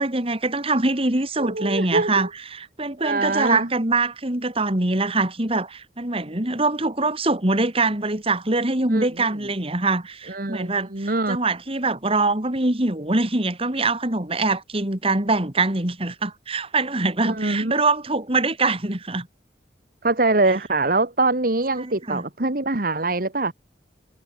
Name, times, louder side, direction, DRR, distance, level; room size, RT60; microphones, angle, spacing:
voice 1, 0.0-19.3 21.8-22.2, right 3 dB, 35° right, 2.7 m, -23 dB
voice 2, 1.4-2.3 3.0-3.7 8.9-9.1 10.3-11.4 17.2-17.7 20.0-23.5, right 2 dB, 55° right, 1.9 m, -23 dB
head